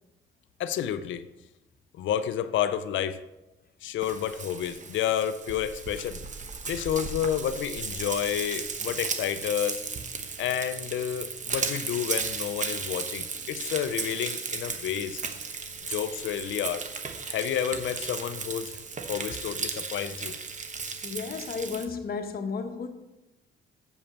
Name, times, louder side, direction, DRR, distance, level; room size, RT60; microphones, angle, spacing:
voice 1, 0.6-1.3 1.9-3.2 3.8-6.2 6.7-9.9 10.4-15.2 15.9-16.9 17.2-18.8 19.1-20.4, left 10 dB, 75° left, 0.6 m, -30 dB
Frying (food), 4.0-21.9, right 5 dB, 40° right, 1.1 m, -35 dB
voice 2, 21.0-22.9, left 5 dB, 50° left, 1.1 m, -33 dB
7.0 x 5.2 x 7.2 m
cardioid pair, 90°, 20 cm